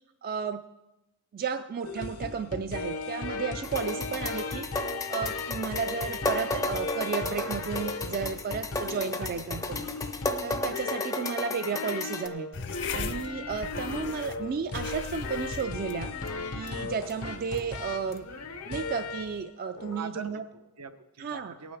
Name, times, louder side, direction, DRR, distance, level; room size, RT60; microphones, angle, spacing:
voice 1, 0.2-0.6 1.3-4.8 5.1-9.9 10.4-12.5 12.9-16.1 16.5-18.3 18.7-20.4 21.2-21.5, right 6 dB, 40° right, 9 dB, 0.3 m, -33 dB
sound 1, 1.8-19.4 19.7-20.0, left 3 dB, 80° left, 0.9 m, -36 dB
sound 2, 3.6-12.3, left 2 dB, 15° left, 0.5 m, -34 dB
voice 2, 8.9-9.8 19.9-21.8, right 5 dB, 90° right, 7 dB, 0.8 m, -43 dB
sound 3, 12.5-19.4, left 4 dB, 55° left, 0.6 m, -40 dB
18.0 x 8.8 x 3.4 m, 1.0 s
head